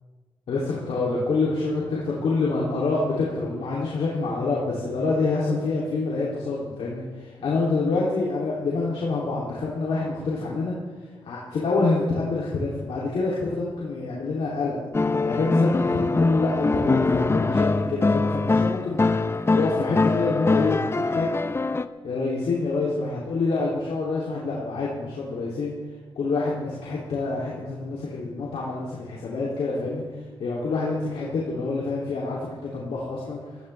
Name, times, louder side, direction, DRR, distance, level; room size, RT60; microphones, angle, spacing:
voice 1, 0.5-10.7 11.2-14.8 15.2-19.0 19.5-21.3 22.0-25.7 26.2-30.0 30.4-33.4, left 3 dB, 85° left, -5 dB, 2.7 m, -27 dB
sound 1, 14.9-21.9, left 3 dB, 25° left, 0.6 m, -23 dB
17.0 x 14.5 x 3.3 m, 1.4 s
cardioid pair, 75°, 10 cm